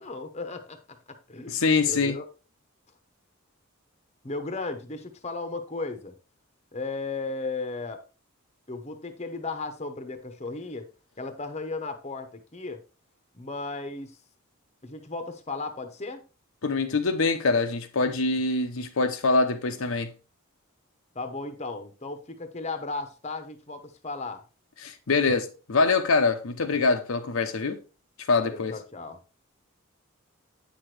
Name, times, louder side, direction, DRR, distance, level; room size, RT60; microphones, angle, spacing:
voice 1, 0.0-2.3 4.2-6.1 6.7-8.0 8.7-10.9 11.2-12.8 13.3-14.2 14.8-16.2 21.1-24.4 28.4-29.2, left 3 dB, 30° left, 0.8 m, -35 dB
voice 2, 1.5-2.2 16.6-20.1 24.8-27.8 28.3-28.7, left 3 dB, 70° left, 0.7 m, -24 dB
8.6 x 6.0 x 3.2 m
head